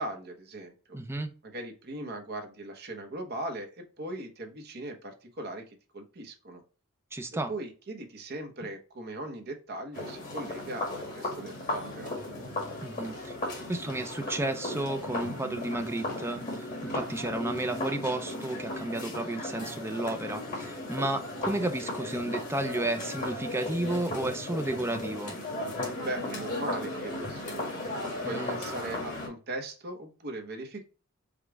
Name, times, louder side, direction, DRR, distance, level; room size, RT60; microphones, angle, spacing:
voice 1, 0.0-1.0 1.4-6.6 7.5-12.1 26.0-27.7 28.2-30.8, right 1 dB, 50° right, 0.9 m, -39 dB
voice 2, 0.9-1.3 7.1-7.5 12.8-13.2 13.7-25.4 28.2-28.6, right 2 dB, 10° right, 0.5 m, -32 dB
sound 1, 9.9-29.3, left 1 dB, 35° left, 1.9 m, -36 dB
5.1 x 2.3 x 3.4 m
head